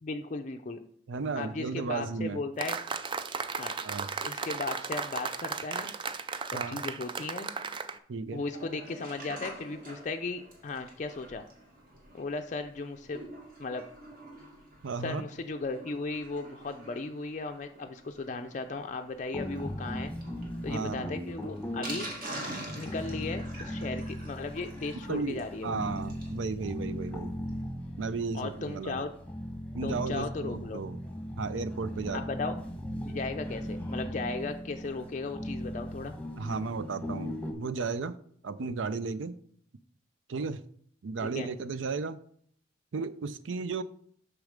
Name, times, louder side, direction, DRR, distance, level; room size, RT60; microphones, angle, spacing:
voice 1, 0.0-0.8 1.4-2.8 3.6-3.7 4.2-5.9 6.5-7.5 8.3-11.5 12.1-13.2 13.6-13.8 15.0-20.1 20.6-22.1 22.7-25.8 28.3-29.1 29.8-30.8 32.1-32.6 33.0-36.1 41.2-41.5, left 3 dB, 40° left, 0.4 m, -36 dB
voice 2, 1.1-2.4 3.8-4.1 6.5-6.8 8.1-8.4 14.8-15.2 20.7-21.1 25.1-27.3 28.0-29.0 29.7-31.0 31.4-32.2 36.4-38.2 38.4-39.4 40.3-40.6 41.0-42.2 42.9-43.8, right 4 dB, 85° right, 0.5 m, -34 dB
sound 1, 2.6-8.0, right 5 dB, 25° right, 0.4 m, -35 dB
Sink (filling or washing), 8.4-26.4 26.8-26.9 27.0-27.1 27.5-27.6, right 1 dB, 50° right, 2.0 m, -46 dB
sound 2, 19.3-37.5, equal, 5° left, 1.1 m, -38 dB
6.4 x 6.2 x 5.0 m
head